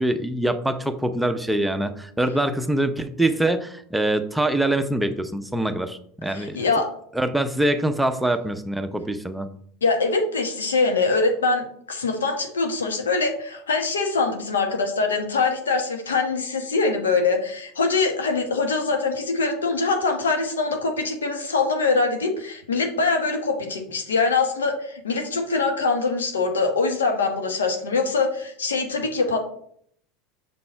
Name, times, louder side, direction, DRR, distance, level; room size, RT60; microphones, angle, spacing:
voice 1, 0.0-6.6 7.1-9.5, right 1 dB, 5° right, 8 dB, 0.6 m, -24 dB
voice 2, 6.3-6.9 9.8-29.4, left 4 dB, 85° left, 4 dB, 1.1 m, -23 dB
6.6 x 4.1 x 4.4 m, 0.64 s
hypercardioid pair, 80°, 0 cm